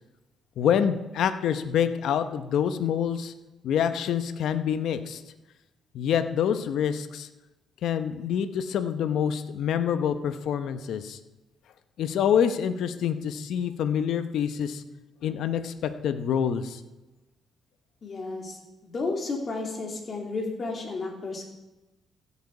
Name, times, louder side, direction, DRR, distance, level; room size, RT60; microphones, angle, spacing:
voice 1, 0.6-3.3 3.6-5.2 5.9-7.3 7.8-11.2 12.0-14.8 15.2-16.8, left 8 dB, 75° left, 10 dB, 0.8 m, -26 dB
voice 2, 18.0-21.5, left 3 dB, 45° left, 1 dB, 3.0 m, -32 dB
15.5 x 8.3 x 4.8 m, 1.0 s
cardioid pair, 90°, 0 cm